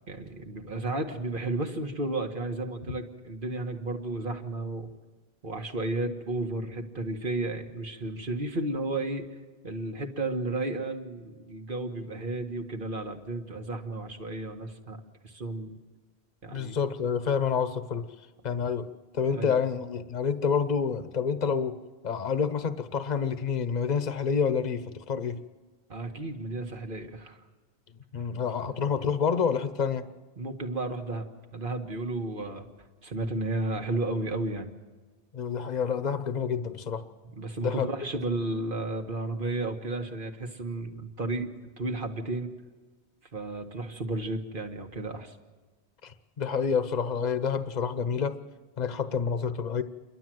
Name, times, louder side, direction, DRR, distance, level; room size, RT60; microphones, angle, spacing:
voice 1, 0.1-4.9 5.4-9.3 9.6-15.0 15.2-15.8 16.4-16.8 19.3-19.6 25.9-27.4 28.7-28.8 30.4-32.7 33.0-34.7 37.3-41.5 41.8-42.5 43.3-45.4, right 2 dB, 50° right, 4 dB, 1.8 m, -33 dB
voice 2, 16.5-18.1 18.4-18.9 19.1-21.8 22.0-25.4 28.1-30.0 35.3-37.0 37.6-37.9 46.0-48.4 48.8-49.8, left 6 dB, 40° left, 11 dB, 1.0 m, -28 dB
29.0 x 12.0 x 7.7 m, 1.3 s
omnidirectional pair, 1.1 m